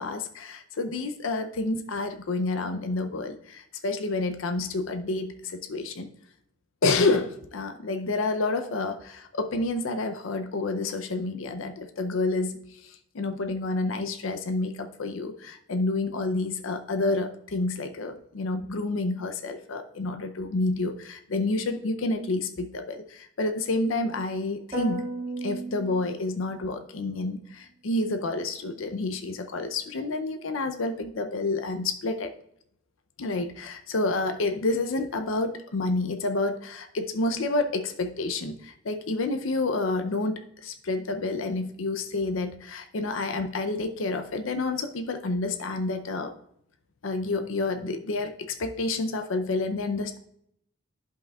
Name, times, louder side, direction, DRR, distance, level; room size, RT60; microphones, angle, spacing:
voice 1, 0.0-6.1 6.8-25.0 25.4-32.3 33.2-46.3 47.0-50.2, left 2 dB, 80° left, 7 dB, 0.6 m, -29 dB
sound 1, 24.7-26.7, right 1 dB, 30° right, 1.9 m, -34 dB
11.5 x 5.5 x 2.3 m, 0.72 s
head